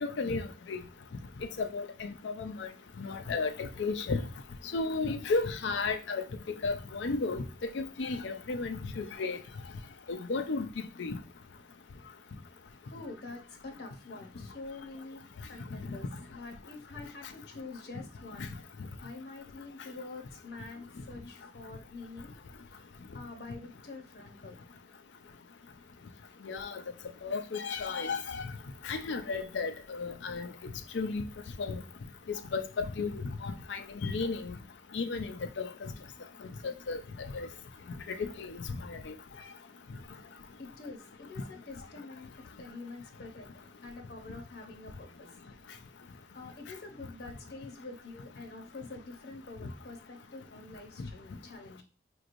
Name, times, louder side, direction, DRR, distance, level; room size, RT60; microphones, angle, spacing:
voice 1, 0.0-0.8 1.6-2.7 3.0-4.2 4.7-6.2 6.6-7.4 7.7-9.4 10.1-10.7 11.0-11.2 15.9-16.0 26.4-26.8 27.2-28.4 28.8-30.5 30.9-31.2 31.6-31.8 32.5-34.5 34.9-35.9 36.6-37.0 37.3-37.5 38.1-38.6 38.9-39.1, left 4 dB, 90° left, 0.5 m, -33 dB
voice 2, 12.8-15.2 15.5-18.5 19.0-22.3 22.7-22.8 23.1-24.6 40.6-43.5 43.8-45.3 46.3-51.8, left 3 dB, 65° left, 0.8 m, -46 dB
5.0 x 3.1 x 2.5 m
head